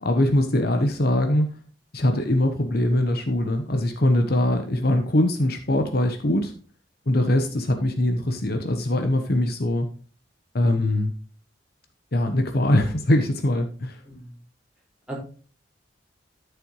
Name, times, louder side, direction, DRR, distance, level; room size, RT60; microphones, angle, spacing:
voice 1, 0.0-1.5 1.9-6.5 7.1-9.9 10.5-11.1 12.1-14.0, left 1 dB, 55° left, 5 dB, 1.0 m, -22 dB
voice 2, 14.0-14.4 15.1-15.2, equal, 5° right, -5 dB, 4.9 m, -39 dB
12.5 x 6.9 x 3.1 m, 0.40 s
head